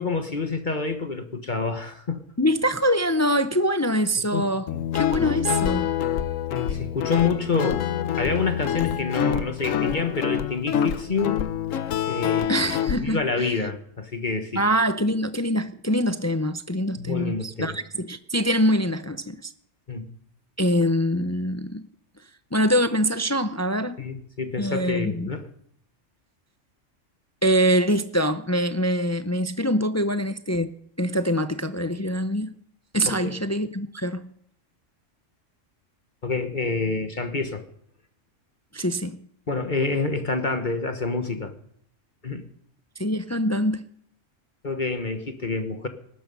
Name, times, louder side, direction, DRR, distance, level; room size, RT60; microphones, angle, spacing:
voice 1, 0.0-2.2 4.3-4.8 6.5-7.8 8.2-11.4 12.1-12.5 12.9-14.6 17.0-17.8 19.9-20.1 24.0-25.5 33.1-33.3 36.2-37.6 39.5-41.5 42.2-42.5 44.6-45.9, left 4 dB, 40° left, 1.3 m, -27 dB
voice 2, 2.4-4.7 4.9-5.9 12.5-13.7 14.5-19.5 20.6-21.8 22.5-24.0 24.6-25.3 27.4-30.7 31.0-32.5 32.9-34.2 38.7-39.2 43.0-43.9, equal, 25° left, 0.4 m, -24 dB
Guitar, 4.7-13.0, left 9 dB, 85° left, 1.2 m, -26 dB
19.5 x 12.0 x 5.4 m
omnidirectional pair, 1.3 m